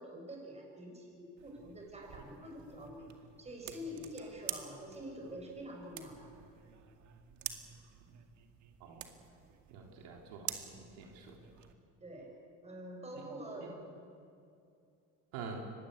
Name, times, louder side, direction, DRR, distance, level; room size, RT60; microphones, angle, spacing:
voice 1, 0.0-3.1 3.4-6.3 12.0-12.4 12.6-13.8, equal, 20° right, 1 dB, 6.8 m, -46 dB
sound 1, 1.4-11.7, right 10 dB, 55° right, 2.2 m, -48 dB
voice 2, 9.7-11.3 15.3-15.6, right 5 dB, 80° right, 1 dB, 3.9 m, -46 dB
24.5 x 19.5 x 8.3 m, 2.5 s
cardioid pair, 115°, 35 cm